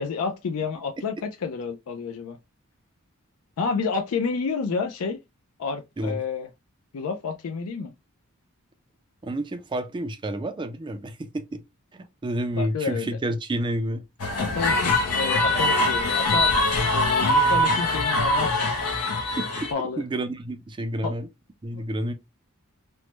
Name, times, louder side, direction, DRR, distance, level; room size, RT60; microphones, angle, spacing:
voice 1, 0.0-2.4 3.6-5.2 5.6-6.5 6.9-7.9 12.6-13.2 14.4-16.5 16.9-18.7 19.7-20.0 21.0-21.1 21.7-21.8, left 5 dB, 70° left, 0.4 m, -30 dB
voice 2, 9.2-11.6 11.9-14.0 19.4-21.3 21.6-22.1, right 1 dB, 20° right, 0.3 m, -30 dB
sound 1, 14.2-19.7, left 1 dB, 90° left, 0.7 m, -22 dB
3.1 x 2.1 x 3.0 m
head